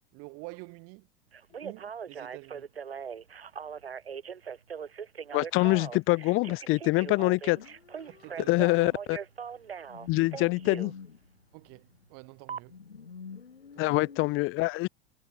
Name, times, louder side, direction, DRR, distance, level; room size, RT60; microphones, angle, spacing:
voice 1, 0.1-1.1 1.6-2.7 8.1-8.9 11.5-12.8 13.8-14.0, right 35 dB, 55° right, 3.1 m, -47 dB
Telephone, 1.3-10.9 12.5-12.6, right 7 dB, 80° right, 5.2 m, -40 dB
voice 2, 5.3-7.6 8.5-9.2 10.1-10.9 13.8-14.9, left 22 dB, 45° left, 1.0 m, -25 dB
sound 1, 7.4-9.2 9.5-12.2 12.7-14.3, left 5 dB, 85° left, 5.2 m, -48 dB
figure-of-eight pair, 80°, 30 cm